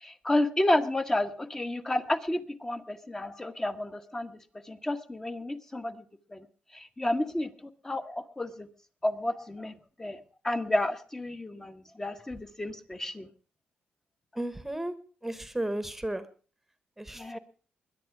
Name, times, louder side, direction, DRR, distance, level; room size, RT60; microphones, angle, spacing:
voice 1, 0.0-4.3 4.7-6.0 6.3-6.4 6.7-7.5 7.8-8.7 9.0-13.3 17.1-17.4, left 1 dB, 15° left, 8 dB, 1.1 m, -31 dB
voice 2, 14.4-14.9 15.2-16.2 17.0-17.4, right 1 dB, 10° right, 12 dB, 1.1 m, -34 dB
21.5 x 10.5 x 4.7 m, 0.39 s
cardioid pair, 110°, 3 cm